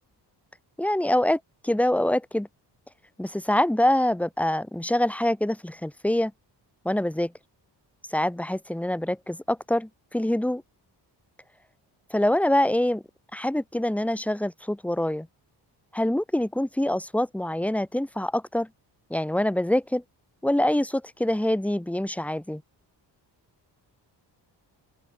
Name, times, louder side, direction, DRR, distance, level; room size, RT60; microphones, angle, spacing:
voice 1, 0.8-2.5 3.2-6.3 6.8-7.3 8.1-10.6 12.1-13.0 13.3-15.3 15.9-18.7 19.1-20.0 20.4-22.6, left 1 dB, 5° left, 2.0 m, -25 dB
open air
wide cardioid pair, 150°, 42 cm